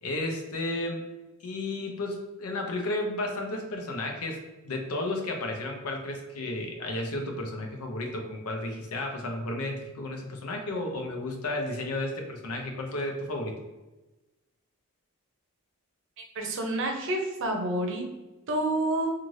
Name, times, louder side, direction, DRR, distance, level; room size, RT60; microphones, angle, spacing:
voice 1, 0.0-1.0 1.4-4.4 4.6-13.5, left 2 dB, 80° left, 2 dB, 0.6 m, -33 dB
voice 2, 16.4-18.0 18.5-19.1, right 1 dB, 60° right, 2 dB, 0.6 m, -28 dB
2.6 x 2.4 x 3.1 m, 1.1 s
head